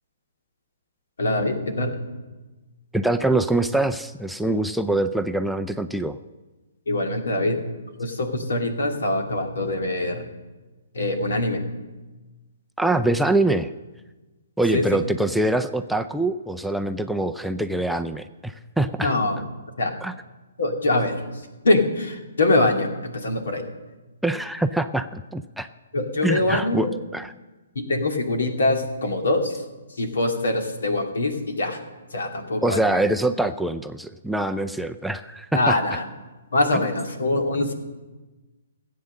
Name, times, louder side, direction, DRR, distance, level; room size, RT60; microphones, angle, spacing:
voice 1, 1.2-2.1 6.9-7.7 8.0-10.3 10.9-11.7 14.7-15.1 19.0-19.5 19.8-20.0 20.6-23.7 25.9-26.9 27.8-29.6 29.9-31.8 32.1-33.0 35.5-36.1 36.5-37.7, left 2 dB, 70° left, 4 dB, 2.4 m, -24 dB
voice 2, 2.9-6.2 12.8-13.7 14.6-19.1 20.0-20.1 24.2-25.7 26.2-26.9 27.1-27.3 32.6-35.8, right 2 dB, ahead, 7 dB, 0.5 m, -24 dB
16.5 x 8.6 x 6.5 m, 1.2 s
figure-of-eight pair, 130°, 0 cm